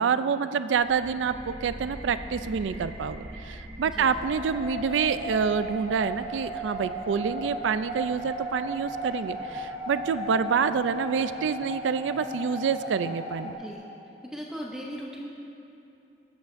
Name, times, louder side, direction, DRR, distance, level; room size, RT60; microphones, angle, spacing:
voice 1, 0.0-13.5, right 6 dB, 85° right, 12 dB, 0.4 m, -27 dB
sound 1, 0.7-12.2, equal, 45° right, 1.3 m, -45 dB
sound 2, 4.0-13.5, right 1 dB, 60° left, 1.7 m, -36 dB
voice 2, 13.4-13.8 14.2-15.3, equal, 5° right, -2 dB, 0.7 m, -38 dB
20.5 x 8.0 x 2.6 m, 2.8 s
head